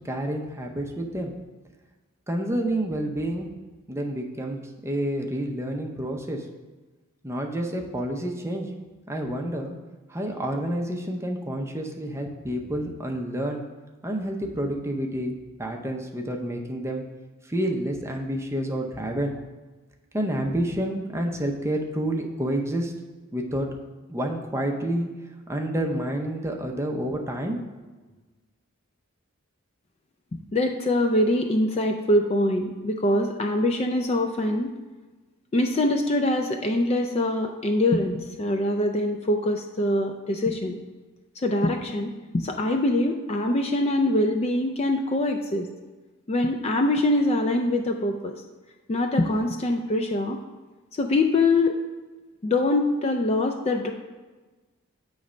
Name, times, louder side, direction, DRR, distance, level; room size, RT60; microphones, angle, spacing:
voice 1, 0.0-1.3 2.3-3.5 3.9-6.5 7.2-8.7 9.1-9.7 10.1-13.6 14.0-15.3 15.6-17.0 17.4-19.3 20.1-22.9 23.3-23.7 24.1-25.1 25.5-27.6, right 1 dB, 15° right, 1 dB, 0.6 m, -29 dB
voice 2, 30.5-34.7 35.5-40.8 41.4-45.7 46.3-48.3 48.9-50.4 51.0-51.8 52.4-53.9, left 1 dB, 30° left, 4 dB, 0.3 m, -24 dB
8.2 x 3.2 x 5.0 m, 1.3 s
head